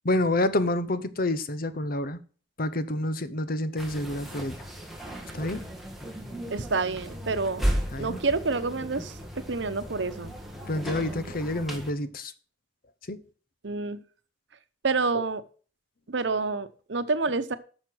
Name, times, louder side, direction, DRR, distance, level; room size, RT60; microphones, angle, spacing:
voice 1, 0.0-2.2 2.6-4.6 5.3-5.6 7.9-8.2 10.7-12.3 13.1-13.2 15.1-15.2, left 1 dB, 55° left, 0.9 m, -28 dB
sound 1, 3.8-11.9, equal, ahead, 2.1 m, -35 dB
voice 2, 6.5-7.6 8.0-9.1 9.5-10.3 13.6-14.0 14.8-15.4 16.1-17.6, right 3 dB, 85° right, 0.9 m, -28 dB
10.5 x 6.5 x 6.3 m
head